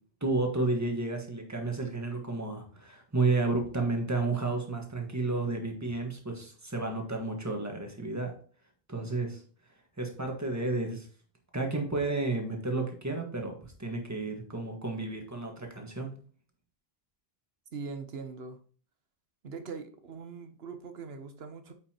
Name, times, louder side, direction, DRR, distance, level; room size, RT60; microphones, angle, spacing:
voice 1, 0.2-8.3 8.9-9.4 10.0-11.0 11.5-16.1, right 3 dB, 15° right, 2 dB, 1.6 m, -31 dB
voice 2, 17.7-18.6 19.4-21.7, right 4 dB, 80° right, 8 dB, 1.2 m, -41 dB
9.1 x 5.5 x 2.9 m, 0.43 s
omnidirectional pair, 1.0 m